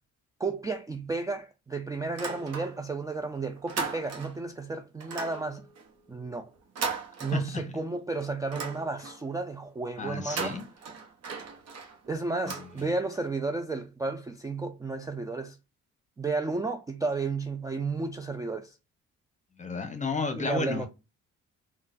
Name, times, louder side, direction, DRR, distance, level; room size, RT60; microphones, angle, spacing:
voice 1, 0.4-5.6 6.1-6.5 7.2-10.5 12.1-15.6 16.2-18.8 20.4-20.9, right 3 dB, 10° right, 0.3 m, -32 dB
sound 1, 2.1-3.0 3.3-4.5 5.0-7.8 8.2-9.3 10.1-13.2, right 5 dB, 55° right, 1.0 m, -38 dB
voice 2, 7.3-7.6 10.0-10.6 12.4-12.7 19.6-20.9, left 4 dB, 25° left, 0.8 m, -32 dB
3.8 x 2.3 x 2.4 m
cardioid pair, 90°, 30 cm